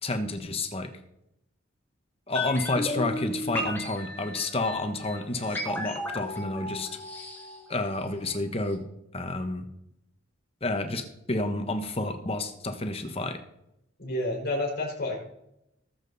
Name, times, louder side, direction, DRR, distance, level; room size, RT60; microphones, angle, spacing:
voice 1, 0.0-0.9 2.3-7.0 7.7-8.8 9.1-9.7 10.6-13.4, left 2 dB, 30° left, 7 dB, 1.2 m, -30 dB
sound 1, 2.3-8.4 8.7-8.8, left 1 dB, 10° left, 2.2 m, -35 dB
voice 2, 14.0-15.2, left 1 dB, 50° left, -1 dB, 4.7 m, -29 dB
19.0 x 7.6 x 4.1 m, 0.81 s
head